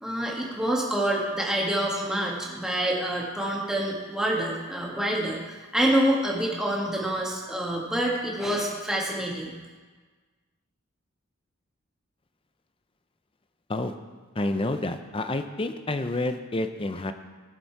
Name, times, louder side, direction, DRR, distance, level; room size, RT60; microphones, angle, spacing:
voice 1, 0.0-9.5, right 1 dB, 5° right, -3 dB, 1.7 m, -27 dB
voice 2, 14.4-17.1, left 2 dB, 25° left, 8 dB, 0.6 m, -29 dB
15.0 x 6.8 x 4.6 m, 1.4 s
head